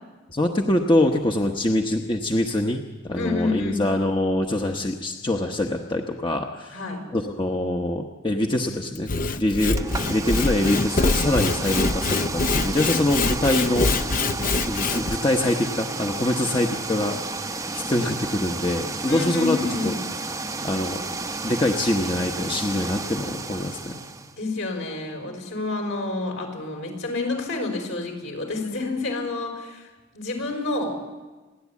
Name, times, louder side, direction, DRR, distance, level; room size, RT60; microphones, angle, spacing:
voice 1, 0.3-6.8 7.1-13.9 14.6-17.4 17.7-19.6 19.8-19.9 20.6-21.0 21.4-24.0, left 1 dB, 25° left, 3 dB, 1.0 m, -24 dB
voice 2, 3.1-3.9 6.7-7.0 19.1-20.0 24.4-31.0, left 3 dB, 70° left, 3 dB, 4.9 m, -29 dB
Sawing / Wood, 8.9-15.2, left 3 dB, 40° left, 0.6 m, -24 dB
sound 1, 9.7-24.4, right 3 dB, 15° right, 0.7 m, -32 dB
29.5 x 11.0 x 8.4 m, 1.2 s
head